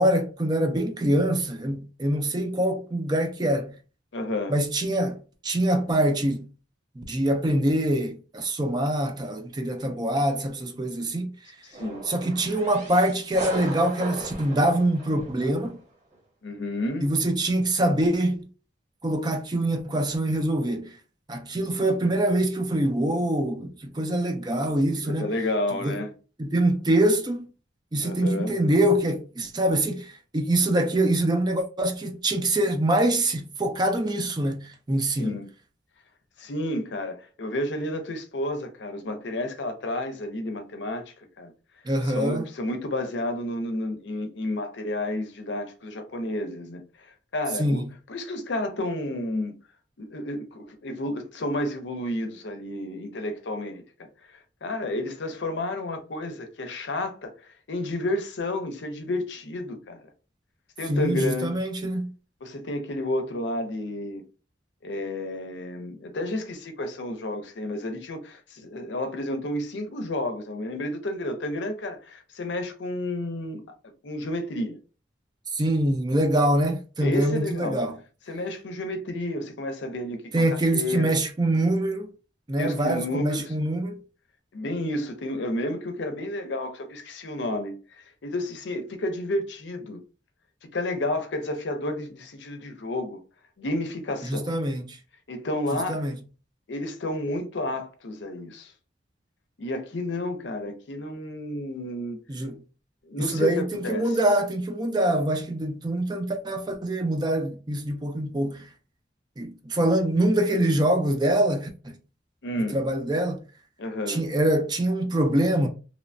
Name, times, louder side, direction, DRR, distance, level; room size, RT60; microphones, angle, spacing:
voice 1, 0.0-3.7 4.5-6.5 7.0-11.3 12.1-15.8 17.0-18.4 19.0-21.0 21.3-25.3 25.8-26.0 26.4-27.5 27.9-35.4 41.9-42.4 47.6-47.9 60.9-62.1 75.5-77.9 80.3-82.1 82.5-84.0 94.2-95.0 95.9-96.1 102.3-102.6 103.2-108.7 109.4-112.0 112.6-113.4 114.1-115.7, right 1 dB, 25° right, 0.4 m, -24 dB
voice 2, 4.1-4.6 11.8-12.0 16.4-17.1 25.0-26.1 28.0-28.6 35.1-35.5 36.4-41.5 42.0-47.8 48.1-49.6 50.0-60.0 60.8-61.6 62.4-64.2 64.8-73.6 74.0-74.8 77.0-77.8 78.3-81.1 82.6-83.5 84.5-90.0 90.7-93.2 93.6-94.5 95.3-96.1 96.7-98.7 99.6-102.2 103.0-104.1 112.4-112.8 113.8-114.2, left 1 dB, 70° left, 0.6 m, -31 dB
sound 1, 11.7-15.8, right 2 dB, 40° right, 1.0 m, -37 dB
3.0 x 2.1 x 2.5 m
head